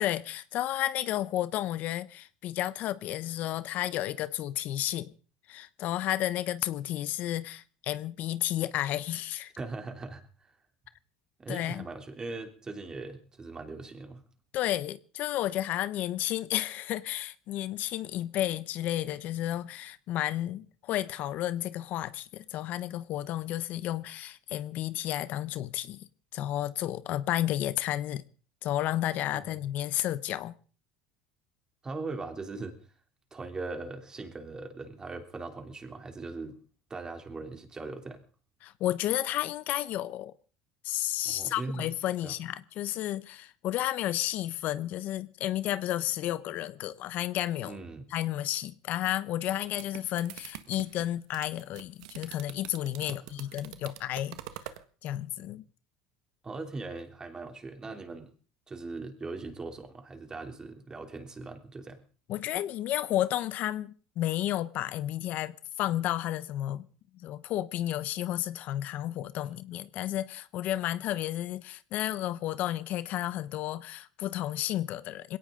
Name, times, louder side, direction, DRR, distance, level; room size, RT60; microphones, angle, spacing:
voice 1, 0.0-5.1 5.5-9.5 11.5-11.9 14.5-28.2 28.6-30.5 38.6-40.3 40.8-47.8 48.1-54.4 54.6-54.7 55.0-55.6 62.3-66.9 67.1-75.4, left 13 dB, 55° left, 0.9 m, -32 dB
voice 2, 9.6-10.2 10.5-10.6 11.4-14.3 29.3-29.6 31.8-32.8 33.3-36.6 36.9-38.2 41.2-41.9 42.2-42.3 47.6-48.0 53.1-53.2 56.4-58.3 58.7-62.0, right 3 dB, 20° right, 3.2 m, -40 dB
sound 1, 49.4-54.8, right 14 dB, 85° right, 1.5 m, -45 dB
21.0 x 17.5 x 3.9 m
supercardioid pair, 110°, 3 cm